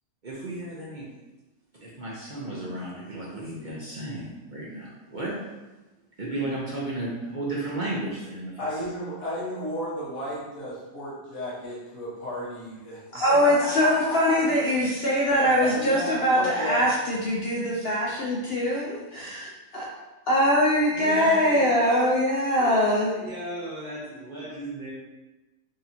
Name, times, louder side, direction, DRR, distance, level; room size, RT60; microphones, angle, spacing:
voice 1, 0.2-1.1 1.8-5.4 6.2-8.9 20.9-22.2 22.6-24.9, right 2 dB, 50° right, -6 dB, 0.6 m, -34 dB
voice 2, 8.6-13.0 13.4-14.6 15.4-16.9, left 1 dB, 55° left, -7 dB, 1.7 m, -33 dB
voice 3, 13.1-19.9 20.3-23.1, equal, 75° left, -4 dB, 0.5 m, -23 dB
4.7 x 2.8 x 2.7 m, 1.1 s
omnidirectional pair, 1.7 m